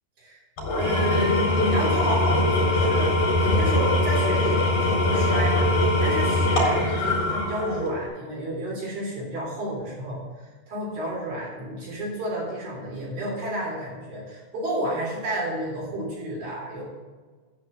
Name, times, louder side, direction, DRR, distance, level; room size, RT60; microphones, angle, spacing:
Engine / Tools, 0.6-8.0, left 1 dB, 45° left, 5.2 m, -22 dB
voice 1, 0.7-5.7 6.0-16.8, equal, 55° right, -6 dB, 5.4 m, -30 dB
10.5 x 9.5 x 4.3 m, 1.4 s
omnidirectional pair, 5.3 m